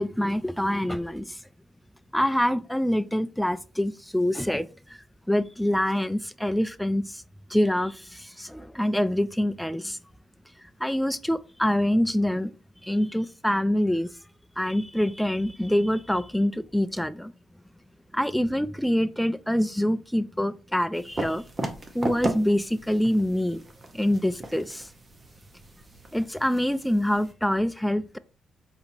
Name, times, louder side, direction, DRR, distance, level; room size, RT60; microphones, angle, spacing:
voice 1, 0.0-1.4 2.1-5.0 5.3-7.2 7.5-10.0 10.8-12.5 12.8-14.1 14.6-17.3 18.1-21.4 21.9-23.6 23.9-24.9 26.1-28.2, left 1 dB, 5° left, 0.3 m, -25 dB
sound 1, 20.9-27.3, right 2 dB, 30° right, 0.8 m, -36 dB
4.3 x 4.0 x 2.6 m
cardioid pair, 90°, 0 cm